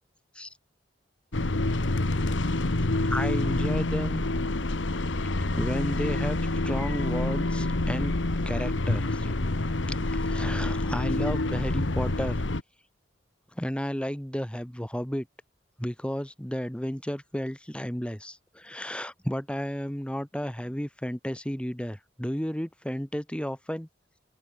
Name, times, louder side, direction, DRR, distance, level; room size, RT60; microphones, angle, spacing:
sound 1, 1.3-12.6, left 2 dB, 80° left, 1.4 m, -27 dB
voice 1, 3.1-4.3 5.5-6.4 6.6-8.2 8.5-9.3 10.1-12.4 13.6-15.3 15.8-23.9, equal, 5° left, 2.0 m, -33 dB
head